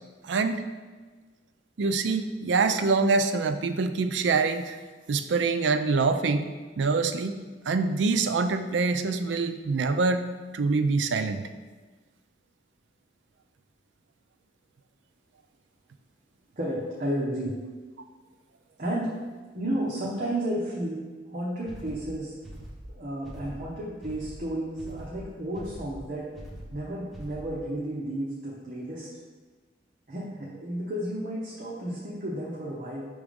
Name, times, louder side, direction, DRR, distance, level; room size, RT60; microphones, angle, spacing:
voice 1, 0.2-0.6 1.8-4.8 5.1-7.3 7.7-10.3 10.5-11.4, right 4 dB, 80° right, 9 dB, 0.4 m, -25 dB
voice 2, 16.6-17.5 18.8-19.1 19.5-21.0 21.3-22.3 22.9-26.3 26.7-29.1 30.1-33.1, right 1 dB, 50° right, -5 dB, 1.0 m, -32 dB
sound 1, 21.7-27.7, right 1 dB, ahead, 1.0 m, -43 dB
6.1 x 3.5 x 5.1 m, 1.4 s
head